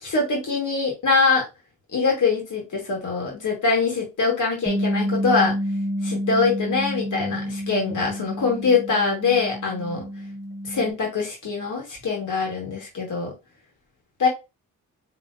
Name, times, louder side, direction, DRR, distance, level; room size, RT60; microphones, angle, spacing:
voice 1, 0.0-1.5 1.9-5.5 6.0-10.1 10.6-13.3 14.2-14.3, left 4 dB, 60° left, -1 dB, 2.5 m, -23 dB
Bass guitar, 4.7-10.9, equal, 5° right, 0.8 m, -29 dB
4.3 x 3.6 x 2.9 m, 0.25 s
cardioid pair, 60°, 34 cm